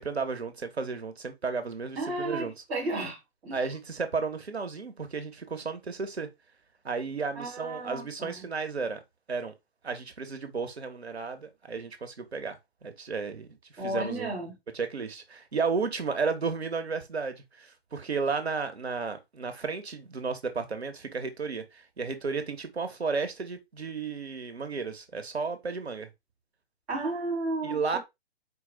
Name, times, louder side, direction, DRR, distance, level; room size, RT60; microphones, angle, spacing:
voice 1, 0.0-2.5 3.5-6.3 6.8-9.0 9.3-9.5 9.8-13.5 13.7-14.3 14.7-26.1 27.6-28.0, right 4 dB, 80° right, 1.1 m, -33 dB
voice 2, 2.0-3.2 3.4-3.6 7.3-8.3 13.8-14.5 26.9-28.0, right 2 dB, 5° right, 0.4 m, -33 dB
4.5 x 2.2 x 3.8 m
figure-of-eight pair, 135°, 32 cm